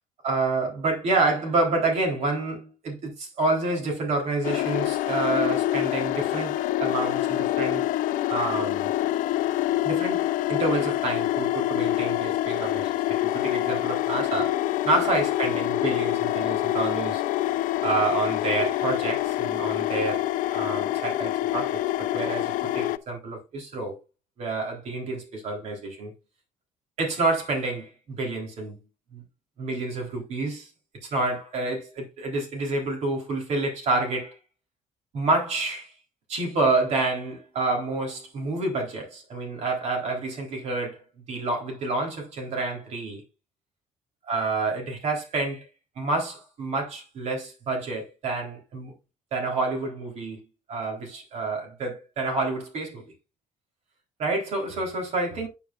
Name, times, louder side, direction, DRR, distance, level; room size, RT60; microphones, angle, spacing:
voice 1, 0.2-7.9 8.3-8.9 9.8-17.2 17.8-24.0 24.4-26.1 27.0-28.8 29.1-29.2 29.6-30.7 31.0-34.4 35.1-35.9 36.3-41.0 41.3-43.2 44.3-45.7 46.0-48.9 49.3-50.4 50.7-53.0 54.2-55.5, right 2 dB, 55° right, 3.8 m, -28 dB
sound 1, 4.4-23.0, left 14 dB, 85° left, 0.6 m, -26 dB
9.1 x 8.9 x 2.5 m
cardioid pair, 145°, 13 cm